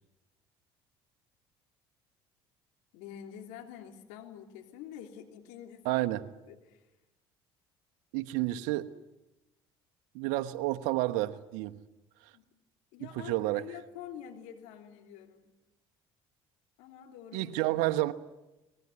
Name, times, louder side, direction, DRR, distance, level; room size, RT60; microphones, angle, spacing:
voice 1, 2.9-6.1 6.5-6.8 12.3-12.5 12.9-15.6 16.8-17.5, left 9 dB, 75° left, 3.2 m, -47 dB
voice 2, 5.8-6.2 8.1-8.9 10.1-11.7 13.0-13.6 17.3-18.1, right 17 dB, 75° right, 1.2 m, -30 dB
24.5 x 20.0 x 9.6 m
hypercardioid pair, 65°, 13 cm